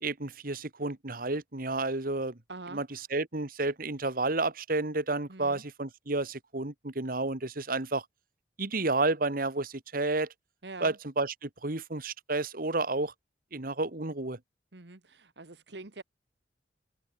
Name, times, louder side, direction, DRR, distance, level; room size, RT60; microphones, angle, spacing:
voice 1, 0.0-2.4 2.7-2.9 3.1-8.0 8.6-10.3 10.8-13.1 13.5-14.4, right 2 dB, 55° right, 1.9 m, -31 dB
voice 2, 2.5-3.0 5.3-5.6 10.6-11.0 14.7-16.0, right 3 dB, 70° right, 1.6 m, -45 dB
head